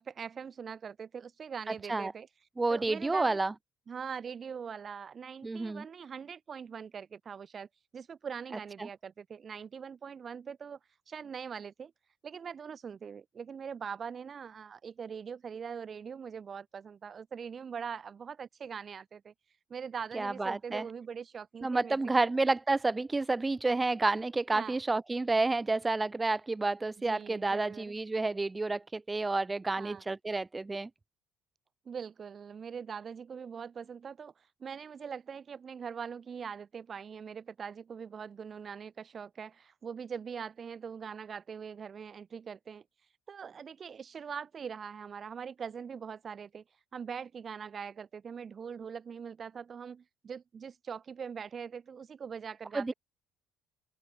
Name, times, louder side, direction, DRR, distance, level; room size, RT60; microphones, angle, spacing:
voice 1, 0.0-2.3 2.7-3.4 3.9-10.8 11.1-11.9 12.2-19.3 19.7-22.3 24.5-24.8 27.0-28.0 29.8-30.0 31.9-42.8 43.3-46.6 46.9-52.9, right 6 dB, 45° right, 6.9 m, -42 dB
voice 2, 1.7-2.1 2.6-3.5 5.4-5.8 8.8-8.9 20.1-20.8 21.6-30.9 52.7-52.9, right 3 dB, 20° right, 1.1 m, -30 dB
open air
supercardioid pair, 70°, 0 cm